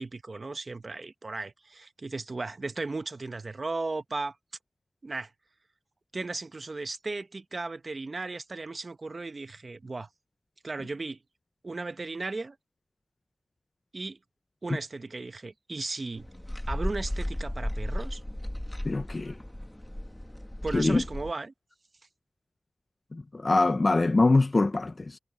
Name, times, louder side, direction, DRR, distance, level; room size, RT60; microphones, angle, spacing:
voice 1, 0.0-4.4 5.0-5.3 6.1-10.1 10.6-11.2 11.6-12.6 13.9-14.2 14.6-16.3 16.7-18.2 20.6-21.5, right 3 dB, 55° right, 1.0 m, -36 dB
sound 1, 16.1-21.3, left 1 dB, 15° left, 2.1 m, -35 dB
voice 2, 18.8-19.3 20.7-21.0 23.1-25.2, left 3 dB, 50° left, 0.8 m, -24 dB
cardioid pair, 45°, 0 cm